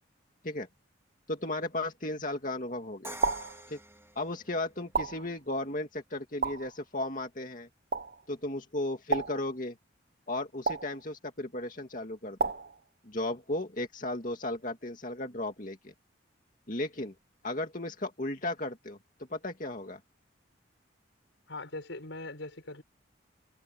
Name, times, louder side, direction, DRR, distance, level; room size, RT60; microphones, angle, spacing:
voice 1, 1.3-3.2 3.7-3.8 4.2-7.7 8.3-9.8 10.3-12.5 13.0-15.9 16.7-17.1 17.4-19.0 19.3-20.0, left 2 dB, 45° left, 2.3 m, -35 dB
Crash cymbal, 3.0-5.0, right 1 dB, 15° right, 3.1 m, -46 dB
sound 1, 3.2-3.6 4.9-5.3 6.4-6.8 7.9-8.2 9.1-9.5 10.7-11.0 12.4-12.8, right 4 dB, 55° right, 0.8 m, -31 dB
voice 2, 21.5-22.8, left 2 dB, 80° left, 4.8 m, -41 dB
head